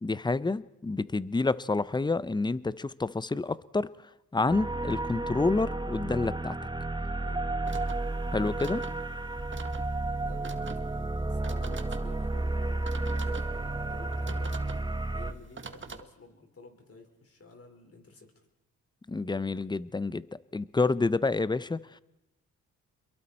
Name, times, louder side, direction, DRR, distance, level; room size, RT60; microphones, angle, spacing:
voice 1, 0.0-3.9 4.3-6.5 8.3-8.8 19.1-20.3 20.5-21.8, left 3 dB, 15° left, 18 dB, 0.7 m, -28 dB
sound 1, 4.5-15.3, right 2 dB, 15° right, 1.2 m, -32 dB
voice 2, 7.2-7.5 10.1-14.6 15.1-18.3, left 3 dB, 45° left, 4 dB, 4.9 m, -51 dB
sound 2, 7.6-16.0, right 4 dB, 35° right, 1.7 m, -46 dB
28.5 x 22.5 x 4.4 m, 0.92 s
supercardioid pair, 60°, 34 cm